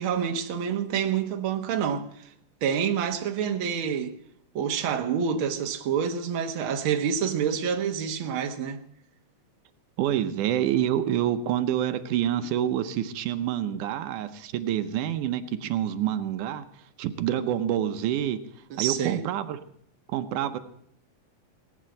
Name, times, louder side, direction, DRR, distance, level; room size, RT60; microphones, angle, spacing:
voice 1, 0.0-2.1 2.6-4.1 4.6-8.8 18.7-19.2, right 7 dB, 55° right, 1.6 m, -27 dB
voice 2, 10.0-16.7 17.0-18.4 18.8-19.6 20.1-20.6, right 11 dB, 80° right, 2.3 m, -27 dB
18.5 x 8.6 x 7.8 m
omnidirectional pair, 3.6 m